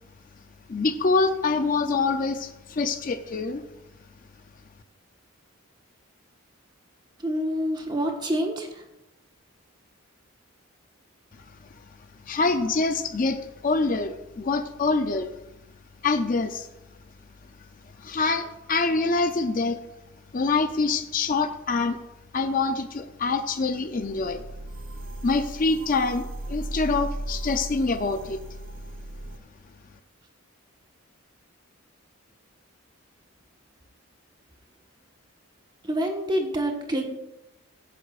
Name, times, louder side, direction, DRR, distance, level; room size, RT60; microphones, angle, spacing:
voice 1, 0.7-3.6 12.3-15.3 16.0-16.7 18.0-19.8 20.3-22.0 22.3-24.4 25.2-28.4, left 3 dB, 40° left, 8 dB, 0.5 m, -25 dB
voice 2, 7.2-8.8 35.8-37.0, equal, 20° right, 2 dB, 1.3 m, -27 dB
sound 1, 24.0-29.4, right 1 dB, 65° right, 0.8 m, -36 dB
16.0 x 9.3 x 2.5 m, 0.94 s
head